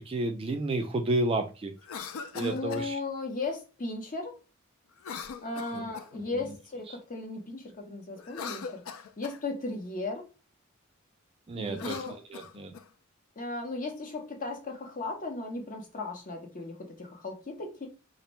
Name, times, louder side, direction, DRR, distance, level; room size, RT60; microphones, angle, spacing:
voice 1, 0.0-1.7 2.3-3.0 5.7-5.9 6.1-6.6 11.5-12.7, right 2 dB, 25° right, 0.3 m, -31 dB
Cough, 1.8-2.9 5.0-6.2 8.2-9.4 11.6-12.9, left 6 dB, 80° left, 0.3 m, -41 dB
voice 2, 2.1-4.4 5.4-8.8 9.2-10.3 11.5-12.2 13.4-17.9, left 3 dB, 40° left, 0.7 m, -36 dB
2.6 x 2.1 x 3.0 m
head